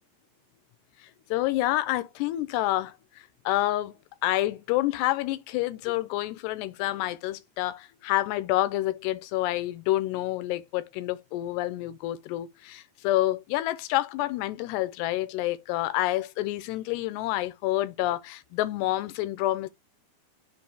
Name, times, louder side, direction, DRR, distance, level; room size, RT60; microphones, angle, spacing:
voice 1, 1.3-4.0 4.2-19.7, left 15 dB, 80° left, 2.7 m, -28 dB
7.0 x 2.7 x 5.6 m
omnidirectional pair, 4.9 m